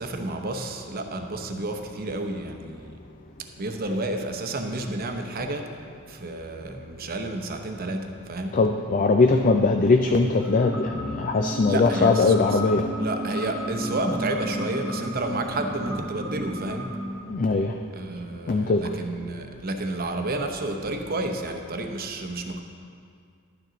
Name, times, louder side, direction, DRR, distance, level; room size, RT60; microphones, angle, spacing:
voice 1, 0.0-3.0 3.6-5.7 6.1-8.6 11.7-12.6 13.0-16.9 17.9-22.6, right 2 dB, 45° right, 5 dB, 0.8 m, -31 dB
voice 2, 8.5-12.9 17.3-17.7 18.5-18.9, left 3 dB, 40° left, 5 dB, 0.4 m, -21 dB
sound 1, 10.4-17.2, equal, ahead, 1.0 m, -32 dB
11.5 x 9.2 x 3.9 m, 2.3 s
head